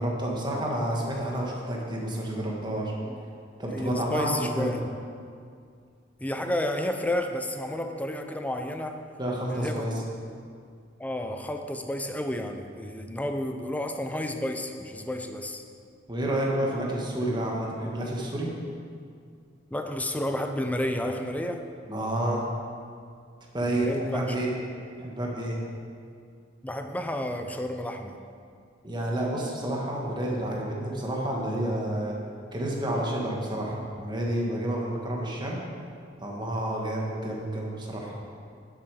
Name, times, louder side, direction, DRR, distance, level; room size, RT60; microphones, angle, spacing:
voice 1, 0.0-2.9 3.6-4.7 9.2-9.9 16.1-18.5 21.9-22.4 23.5-24.5 25.0-25.6 28.8-32.1 32.5-35.6 36.2-38.2, right 1 dB, 25° right, -2 dB, 1.6 m, -29 dB
voice 2, 3.7-4.8 6.2-9.0 9.5-9.9 11.0-15.6 19.7-21.6 23.6-24.4 26.6-28.2, left 1 dB, 10° left, 5 dB, 0.6 m, -31 dB
10.0 x 7.8 x 4.9 m, 2.3 s
head